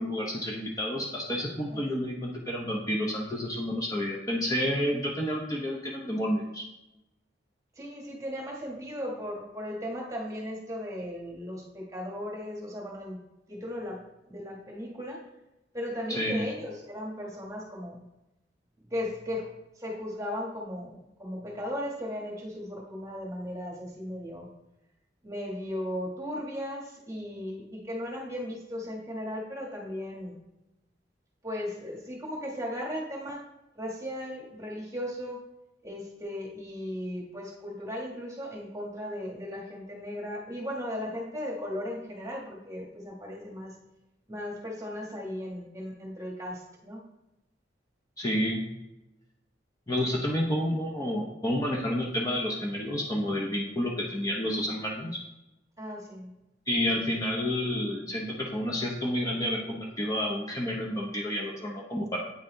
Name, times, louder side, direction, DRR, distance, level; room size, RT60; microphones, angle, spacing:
voice 1, 0.0-6.6 16.1-16.5 48.2-48.6 49.9-55.2 56.7-62.3, equal, 20° left, -2 dB, 0.7 m, -30 dB
voice 2, 7.8-13.2 13.5-14.0 14.3-15.2 15.7-18.0 18.9-19.5 19.8-24.5 25.2-30.3 31.4-33.4 33.8-35.4 35.8-43.7 44.3-47.0 55.8-56.3, left 1 dB, 20° right, -1 dB, 1.4 m, -36 dB
8.5 x 4.1 x 3.9 m, 0.94 s
head